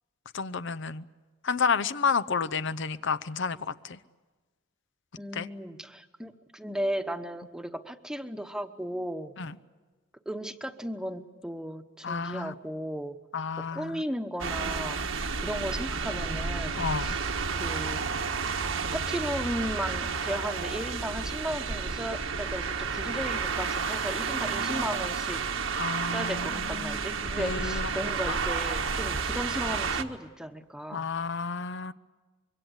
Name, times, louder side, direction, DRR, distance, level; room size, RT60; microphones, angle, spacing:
voice 1, 0.3-1.0 1.4-4.0 5.3-5.5 9.4-9.6 12.0-12.5 13.3-14.0 16.8-17.2 25.8-26.5 27.4-27.9 28.3-28.4 30.9-31.9, left 5 dB, 65° left, 14 dB, 0.7 m, -30 dB
voice 2, 5.2-9.3 10.3-13.2 13.6-17.2 17.6-18.1 18.9-25.4 26.1-31.1, equal, 5° right, 8 dB, 1.0 m, -35 dB
sound 1, 14.4-30.0, right 5 dB, 75° right, 1.5 m, -31 dB
25.0 x 23.5 x 8.0 m, 1.3 s
head